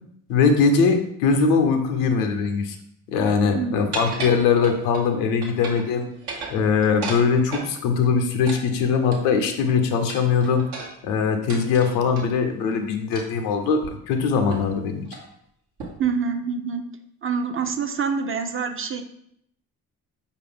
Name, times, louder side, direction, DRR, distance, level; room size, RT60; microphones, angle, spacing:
voice 1, 0.3-2.8 3.1-6.1 6.5-10.6 11.0-15.0, left 5 dB, 90° left, 6 dB, 0.6 m, -21 dB
sound 1, 3.9-5.1 5.4-5.9 6.2-7.7 8.5-9.5 10.1-12.3 13.1-13.4 13.8-13.9 14.5-14.8 15.0-15.3 15.8-16.1, right 3 dB, 70° right, 1.0 m, -35 dB
voice 2, 16.0-16.8 17.2-19.0, right 6 dB, 30° right, 6 dB, 0.5 m, -26 dB
4.9 x 2.5 x 3.3 m, 0.72 s
hypercardioid pair, 50°, 41 cm